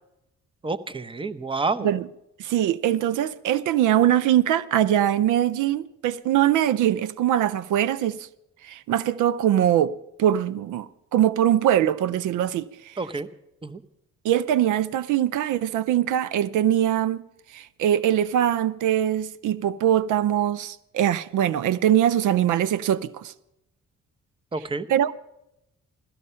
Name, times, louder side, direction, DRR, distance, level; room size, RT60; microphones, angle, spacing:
voice 1, 0.6-1.9 13.0-13.3 13.6-13.8 24.5-24.9, right 3 dB, 15° right, 0.8 m, -29 dB
voice 2, 2.4-8.3 8.6-9.9 10.2-13.0 14.2-17.2 17.5-23.3 24.9-25.2, right 11 dB, 80° right, 0.6 m, -22 dB
16.0 x 13.5 x 5.6 m
cardioid pair, 90°, 30 cm